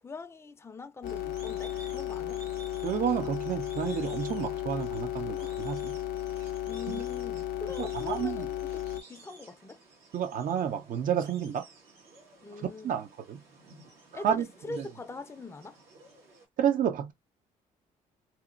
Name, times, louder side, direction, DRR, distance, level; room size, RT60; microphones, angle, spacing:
voice 1, 0.0-2.4 6.7-9.8 12.4-13.0 14.1-15.8, left 3 dB, 15° left, 0.5 m, -42 dB
sound 1, 1.0-9.0, left 12 dB, 75° left, 0.4 m, -34 dB
sound 2, 1.0-16.4, right 3 dB, 80° right, 1.3 m, -53 dB
voice 2, 2.8-6.0 6.9-7.0 7.8-8.5 10.1-11.7 12.6-13.4 14.1-14.9 16.6-17.1, right 9 dB, 60° right, 0.7 m, -31 dB
2.8 x 2.1 x 2.5 m
supercardioid pair, 60°, 16 cm